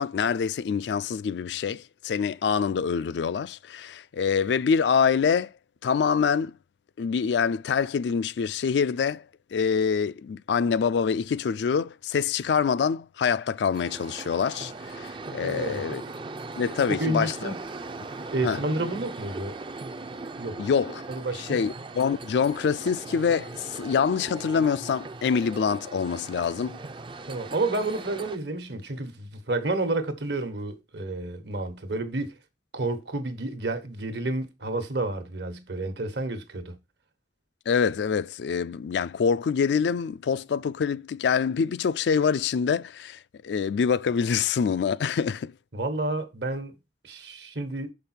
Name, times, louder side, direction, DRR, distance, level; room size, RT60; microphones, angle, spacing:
voice 1, 0.0-5.5 5.8-6.5 7.0-9.3 9.5-16.0 16.6-17.5 18.4-18.6 20.6-21.0 21.3-26.8 37.7-45.5, left 6 dB, 70° left, 0.3 m, -25 dB
sound 1, 13.7-28.4, right 3 dB, 25° right, 0.4 m, -39 dB
voice 2, 15.4-15.8 16.9-17.6 18.3-19.6 20.4-20.6 21.1-21.6 27.3-32.3 32.7-36.8 45.7-46.7 47.0-47.9, right 2 dB, 70° right, 1.2 m, -30 dB
6.4 x 5.2 x 4.3 m
head